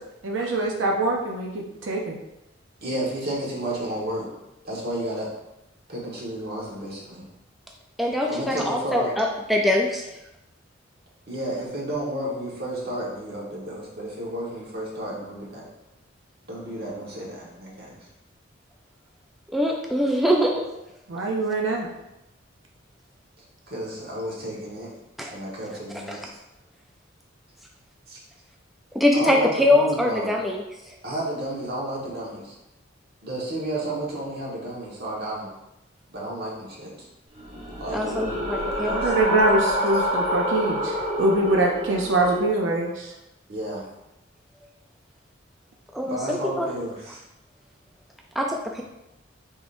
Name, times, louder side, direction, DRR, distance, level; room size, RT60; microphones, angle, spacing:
voice 1, 0.2-2.2 21.1-21.9 38.9-43.1, right 2 dB, 80° right, 0 dB, 0.6 m, -24 dB
voice 2, 2.8-4.3 4.6-5.3 5.9-7.2 8.3-9.1 11.3-15.7 16.5-18.0 23.7-24.9 25.3-26.3 28.1-28.2 29.1-30.3 31.0-32.5 33.2-35.5 36.1-36.9 37.8-39.1 43.5-43.8 46.0-47.2, right 1 dB, 55° right, -4 dB, 1.3 m, -32 dB
voice 3, 8.0-10.0 19.5-20.6 25.2-25.3 26.1-26.2 28.9-30.6 37.9-39.0 45.9-46.7 48.4-48.8, left 1 dB, ahead, -1 dB, 0.3 m, -23 dB
sound 1, 37.4-42.5, equal, 35° right, 1.3 m, -27 dB
5.1 x 3.7 x 2.6 m, 0.91 s
head